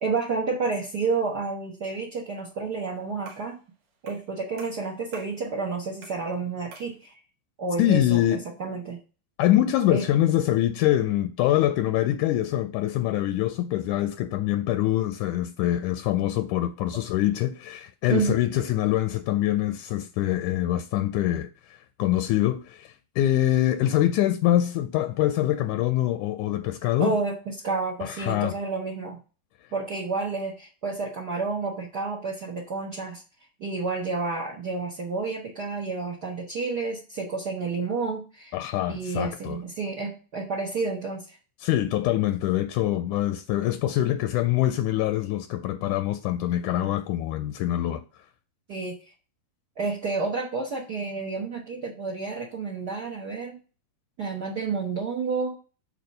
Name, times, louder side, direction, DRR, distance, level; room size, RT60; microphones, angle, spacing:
voice 1, 0.0-3.6 4.0-7.2 7.6-9.0 9.9-10.1 18.1-18.3 27.0-29.2 29.7-33.2 33.6-38.5 38.9-41.4 48.7-49.0 49.8-53.6 54.2-55.6, right 4 dB, 70° right, 0.9 m, -30 dB
sound 1, 3.3-3.6 4.1-4.3 4.6-5.4 6.0-6.3 6.7-7.0, right 4 dB, 90° right, 3.3 m, -46 dB
voice 2, 7.8-8.4 9.4-27.2 28.0-28.5 38.5-39.6 41.6-48.0, left 13 dB, 80° left, 1.9 m, -24 dB
8.9 x 3.0 x 6.5 m
omnidirectional pair, 3.8 m